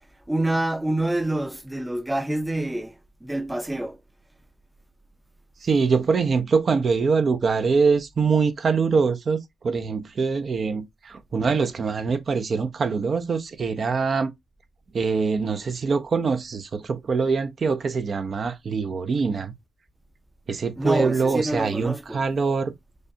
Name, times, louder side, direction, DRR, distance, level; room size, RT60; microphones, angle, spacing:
voice 1, 0.3-3.0 3.2-4.0 20.8-22.2, right 1 dB, 10° right, 0.6 m, -27 dB
voice 2, 5.6-14.3 14.9-19.5 20.5-22.7, right 5 dB, 60° right, 0.6 m, -23 dB
6.4 x 2.3 x 2.6 m
cardioid pair, 55°, 0 cm